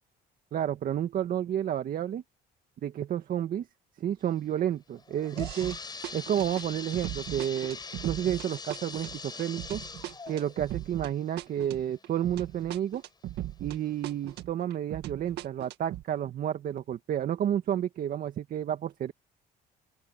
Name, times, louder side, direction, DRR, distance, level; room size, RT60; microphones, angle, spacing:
voice 1, 0.5-2.2 2.8-3.7 4.0-5.8 6.1-9.8 10.3-13.0 13.6-19.1, right 10 dB, 55° right, 1.8 m, -31 dB
sound 1, 5.0-12.6 13.1-13.2 13.9-14.0 14.4-14.5, left 4 dB, 25° left, 5.0 m, -43 dB
sound 2, 5.4-5.8 6.0-13.8 14.0-16.0, right 14 dB, 80° right, 2.0 m, -38 dB
open air
cardioid pair, 110°, 17 cm